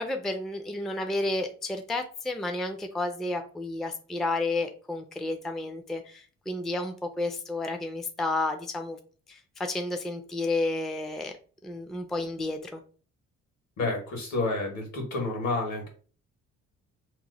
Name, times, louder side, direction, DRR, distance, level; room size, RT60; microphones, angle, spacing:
voice 1, 0.0-9.0 9.3-11.3 11.6-12.8, left 2 dB, ahead, 5 dB, 0.4 m, -31 dB
voice 2, 13.8-15.9, left 2 dB, 70° left, 2 dB, 1.5 m, -29 dB
3.0 x 2.0 x 3.9 m, 0.40 s
cardioid pair, 90°, 30 cm